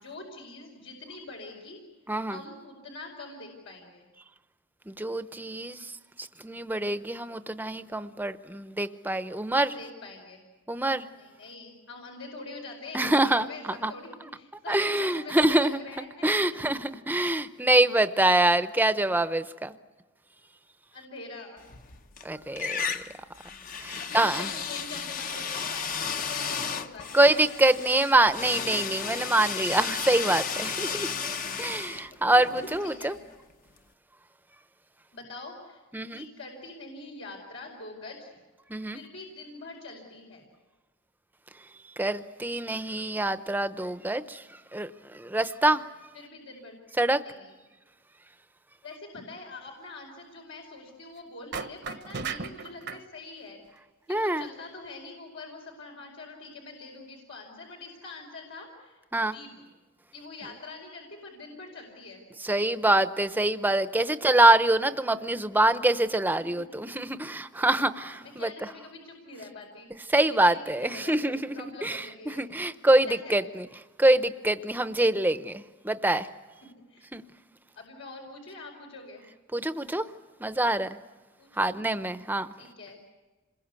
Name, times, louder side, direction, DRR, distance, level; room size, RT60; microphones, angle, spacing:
voice 1, 0.0-1.8 2.3-4.1 9.5-10.4 11.1-16.3 20.9-21.7 24.0-28.3 32.6-33.2 35.1-38.3 38.9-40.5 46.1-46.8 47.2-47.5 48.8-53.6 54.1-59.5 60.1-62.3 68.0-72.4 73.1-73.5 76.9-77.1 77.7-79.3 81.4-81.8 82.6-83.0, left 3 dB, 85° left, 0 dB, 4.9 m, -44 dB
voice 2, 2.1-2.4 4.9-5.9 6.2-9.7 10.7-11.1 12.9-13.9 14.7-15.8 16.2-19.7 22.2-23.0 23.8-24.5 27.1-33.2 35.9-36.2 38.7-39.0 42.0-44.4 44.7-45.8 47.0-47.2 54.1-54.5 59.1-59.3 62.4-68.5 70.1-73.7 74.0-76.3 77.1-77.2 79.5-80.0 80.4-80.9 81.6-82.5, right 1 dB, 10° right, 11 dB, 0.8 m, -25 dB
sound 1, 21.6-22.2 22.6-33.4, left 6 dB, 45° left, 0.9 m, -34 dB
sound 2, 51.5-53.0, right 5 dB, 60° right, 1.0 m, -35 dB
27.5 x 21.5 x 8.4 m, 1.2 s
head